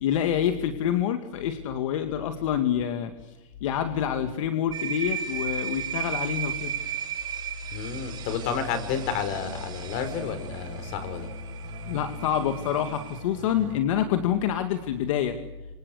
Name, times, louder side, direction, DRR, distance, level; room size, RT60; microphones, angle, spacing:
voice 1, 0.0-3.3 3.6-6.7 11.9-15.4, left 9 dB, 75° left, 8 dB, 2.2 m, -27 dB
sound 1, 4.7-13.2, right 8 dB, 25° right, 4.9 m, -36 dB
voice 2, 7.7-11.3, left 6 dB, 50° left, 10 dB, 5.5 m, -30 dB
sound 2, 8.2-13.8, right 5 dB, 65° right, 6.6 m, -44 dB
29.0 x 26.5 x 6.5 m, 1.1 s
supercardioid pair, 140°, 17 cm